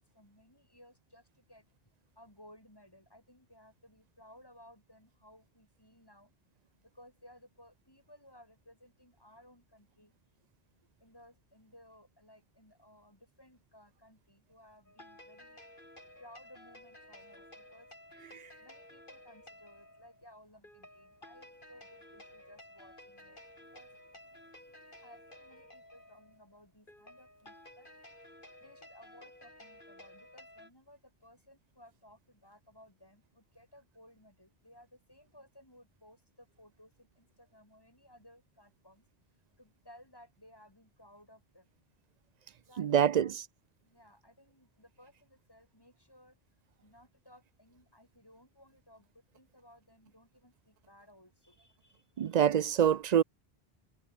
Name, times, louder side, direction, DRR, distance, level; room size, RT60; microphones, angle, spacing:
voice 1, 0.1-1.6 2.2-6.3 6.8-10.1 11.0-15.6 16.2-17.9 18.6-23.4 23.7-23.9 25.0-27.9 28.6-39.0 39.6-41.7 42.7-43.4 43.8-46.4 46.8-52.4, left 1 dB, 20° left, 7.7 m, -59 dB
sound 1, 14.9-30.7, left 1 dB, 55° left, 7.5 m, -54 dB
voice 2, 42.8-43.3 52.2-53.2, right 9 dB, 50° right, 0.5 m, -25 dB
omnidirectional pair, 1.0 m